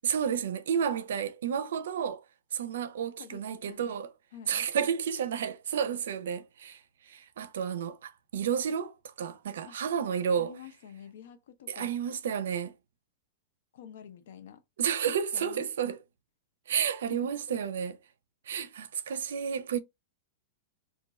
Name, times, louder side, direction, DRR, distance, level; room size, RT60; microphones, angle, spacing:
voice 1, 0.0-2.2 2.5-4.1 4.5-6.8 7.1-10.5 11.7-12.7 14.8-16.0 16.7-18.0 18.5-19.8, right 8 dB, 85° right, 0.5 m, -31 dB
voice 2, 3.2-3.9 4.3-4.6 9.7-9.8 10.4-11.9 13.7-14.6 15.0-15.7 17.1-17.6, left 8 dB, 70° left, 0.7 m, -48 dB
4.0 x 2.5 x 2.4 m
supercardioid pair, 170°, 0 cm